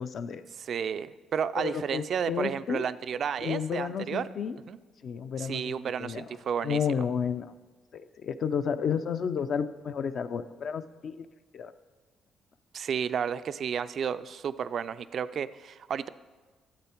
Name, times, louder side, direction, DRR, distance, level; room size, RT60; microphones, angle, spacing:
voice 1, 0.0-0.4 1.6-2.9 3.4-4.6 5.0-6.3 6.6-7.5 7.9-11.3 11.5-11.7, left 7 dB, 55° left, 10 dB, 0.5 m, -32 dB
voice 2, 0.6-4.2 4.7-4.8 5.4-6.8 12.7-16.1, right 7 dB, 55° right, 14 dB, 0.3 m, -32 dB
12.5 x 7.8 x 4.4 m, 1.3 s
cardioid pair, 115°, 0 cm